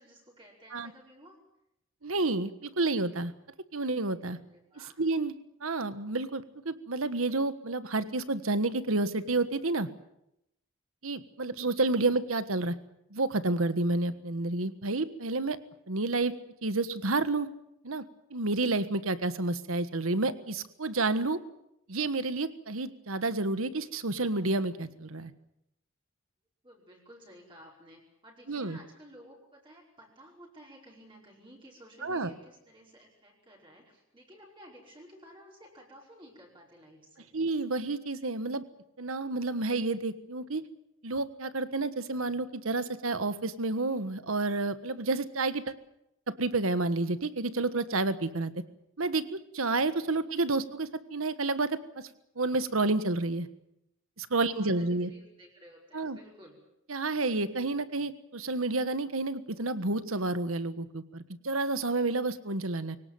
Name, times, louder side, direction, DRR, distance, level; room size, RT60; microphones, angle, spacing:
voice 1, 0.0-1.4 4.5-5.0 26.6-37.3 54.4-56.6, equal, 25° right, -2 dB, 5.2 m, -54 dB
voice 2, 2.0-3.3 3.7-4.4 5.0-5.3 5.6-9.9 11.0-12.7 13.1-15.6 15.9-16.3 16.6-17.5 17.8-18.0 18.3-21.4 21.9-25.3 28.5-28.8 32.0-32.3 37.3-38.6 39.0-40.6 41.0-45.8 46.3-48.5 49.0-52.1 52.4-53.5 54.2-55.1 55.9-56.2 56.9-63.0, right 2 dB, 80° right, 13 dB, 1.4 m, -30 dB
23.5 x 18.0 x 9.2 m, 0.82 s
head